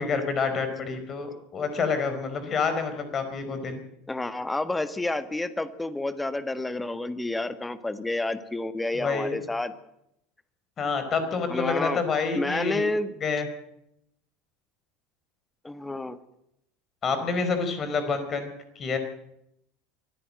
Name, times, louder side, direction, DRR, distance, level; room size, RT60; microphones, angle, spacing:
voice 1, 0.0-3.8 8.9-9.4 10.8-12.8 13.2-13.5 17.0-19.0, left 5 dB, 35° left, 9 dB, 4.6 m, -28 dB
voice 2, 4.1-9.7 11.5-12.0 12.3-13.1 15.6-16.2, left 2 dB, 10° left, 12 dB, 1.6 m, -29 dB
24.5 x 14.0 x 7.8 m, 0.79 s
figure-of-eight pair, 70°, 0 cm